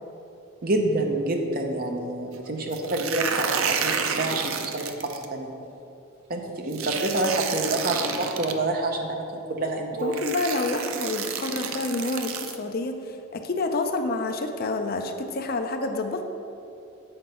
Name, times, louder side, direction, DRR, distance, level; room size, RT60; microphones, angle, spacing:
voice 1, 0.6-5.5 6.3-10.1, right 2 dB, 45° right, 2 dB, 0.7 m, -27 dB
sound 1, 2.7-5.3 6.7-8.5 9.6-9.7 10.1-12.6, right 6 dB, 80° right, 0.5 m, -30 dB
voice 2, 10.0-16.2, left 2 dB, 45° left, 6 dB, 0.5 m, -28 dB
7.9 x 4.5 x 5.4 m, 2.7 s
head